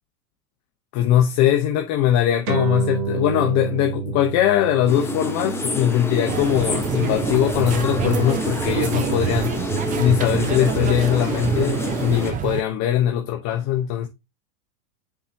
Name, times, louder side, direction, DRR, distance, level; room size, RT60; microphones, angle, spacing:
voice 1, 0.9-9.6 10.0-14.1, left 11 dB, 35° left, 1.2 m, -21 dB
sound 1, 2.5-9.3, right 7 dB, 70° right, 3.2 m, -31 dB
sound 2, 4.9-12.3, left 2 dB, 5° left, 1.3 m, -28 dB
sound 3, 6.3-12.6, right 9 dB, 20° right, 0.5 m, -26 dB
7.5 x 6.7 x 2.9 m
supercardioid pair, 135°, 45 cm